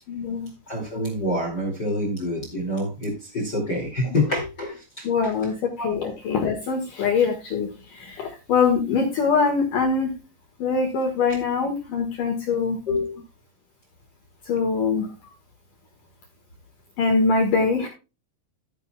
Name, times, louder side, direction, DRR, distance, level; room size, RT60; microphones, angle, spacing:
voice 1, 0.1-0.5 4.0-4.2 5.0-10.1 10.6-12.8 14.5-15.1 17.0-17.9, left 4 dB, 60° left, 3 dB, 2.3 m, -23 dB
voice 2, 0.7-5.0 5.8-5.9 12.9-13.2, left 1 dB, 40° left, 3 dB, 1.5 m, -27 dB
13.5 x 9.0 x 2.2 m, 0.29 s
omnidirectional pair, 5.9 m